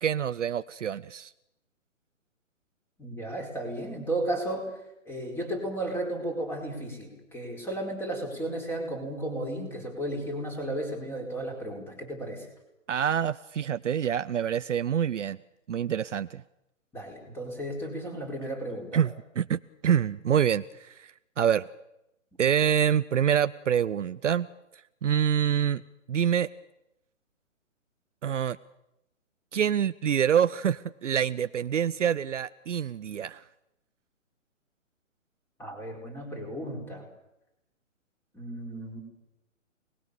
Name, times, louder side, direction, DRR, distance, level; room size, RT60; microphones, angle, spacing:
voice 1, 0.0-1.3 12.9-15.4 15.7-16.4 18.9-21.7 22.4-24.5 25.0-25.8 26.1-26.5 28.2-28.6 29.5-33.4, right 9 dB, 60° right, 14 dB, 0.8 m, -26 dB
voice 2, 3.0-4.7 5.1-12.5 16.9-19.0 35.6-37.1 38.3-39.0, right 1 dB, 5° left, 2 dB, 4.7 m, -34 dB
28.0 x 20.5 x 6.9 m, 0.87 s
hypercardioid pair, 150°, 40 cm